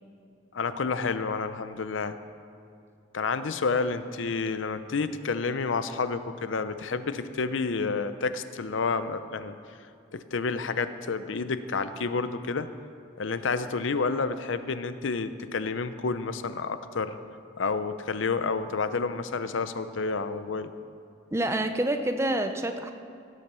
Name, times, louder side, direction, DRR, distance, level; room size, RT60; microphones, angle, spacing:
voice 1, 0.5-2.2 3.1-9.5 10.1-12.7 13.2-17.2 17.6-20.7, left 4 dB, 80° left, 12 dB, 0.6 m, -29 dB
voice 2, 21.3-22.9, right 1 dB, 15° right, 6 dB, 0.6 m, -27 dB
17.0 x 7.5 x 6.8 m, 2.5 s
head